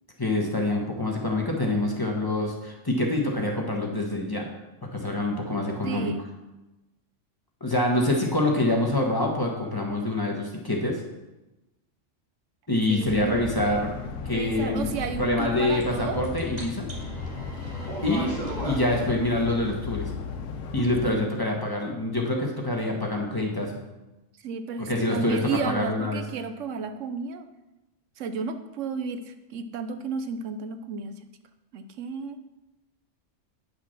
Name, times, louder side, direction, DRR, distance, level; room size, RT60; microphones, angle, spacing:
voice 1, 0.2-4.5 4.9-6.1 7.6-11.0 12.7-13.9 14.2-14.9 15.2-16.9 18.0-18.3 18.6-20.1 20.7-23.7 24.8-26.2, left 1 dB, 20° left, 0 dB, 1.3 m, -26 dB
voice 2, 5.8-6.2 12.9-13.4 14.3-16.2 21.0-21.2 24.4-27.5 28.2-31.1 31.7-32.4, right 5 dB, 75° right, 9 dB, 1.0 m, -32 dB
sound 1, 13.0-21.1, left 4 dB, 90° left, 1.2 m, -35 dB
sound 2, 15.8-15.9 16.1-19.0, right 2 dB, 30° right, 2.1 m, -36 dB
9.3 x 5.9 x 5.8 m, 1.0 s
omnidirectional pair, 1.3 m